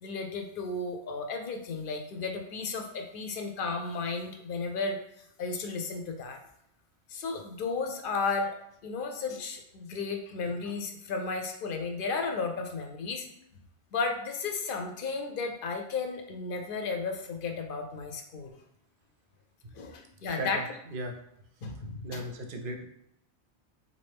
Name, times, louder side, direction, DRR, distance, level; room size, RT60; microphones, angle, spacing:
voice 1, 0.0-5.0 5.4-6.4 7.1-8.6 8.8-13.2 13.9-18.6 19.8-20.6 21.6-22.2, left 4 dB, 60° left, 4 dB, 0.7 m, -34 dB
voice 2, 20.4-21.1 22.0-22.8, right 1 dB, 60° right, 3 dB, 0.7 m, -37 dB
3.7 x 2.6 x 3.4 m, 0.77 s
omnidirectional pair, 1.1 m